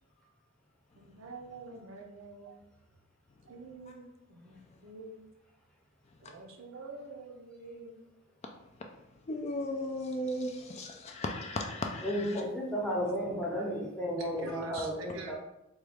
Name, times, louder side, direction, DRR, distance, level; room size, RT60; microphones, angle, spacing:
voice 1, 0.9-2.6 3.5-5.2 6.2-8.1 13.2-13.7 14.2-15.3, right 3 dB, 70° right, 3 dB, 0.5 m, -47 dB
voice 2, 9.3-12.4, left 1 dB, 30° left, 3 dB, 0.3 m, -36 dB
voice 3, 12.0-15.3, equal, 5° left, -4 dB, 0.7 m, -33 dB
3.7 x 2.3 x 3.2 m, 0.87 s
head